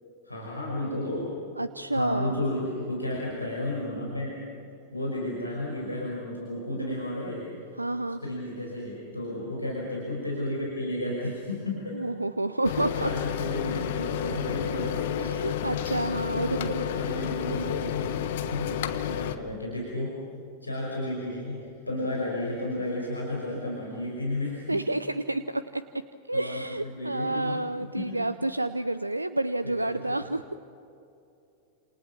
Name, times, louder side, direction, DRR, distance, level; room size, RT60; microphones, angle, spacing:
voice 1, 0.2-1.3 1.9-4.4 4.9-7.5 8.2-12.0 13.0-15.1 15.6-15.9 16.3-20.2 20.6-24.9 26.3-27.6 27.9-28.2 29.6-30.2, left 1 dB, 85° left, -3 dB, 5.4 m, -33 dB
voice 2, 1.6-2.4 7.8-8.2 11.9-13.1 15.2-16.7 24.7-25.8 26.3-30.5, right 2 dB, 85° right, 13 dB, 0.6 m, -29 dB
sound 1, 12.6-19.4, left 10 dB, 55° left, 1.4 m, -31 dB
29.0 x 28.0 x 6.0 m, 2.7 s
figure-of-eight pair, 90°, 0 cm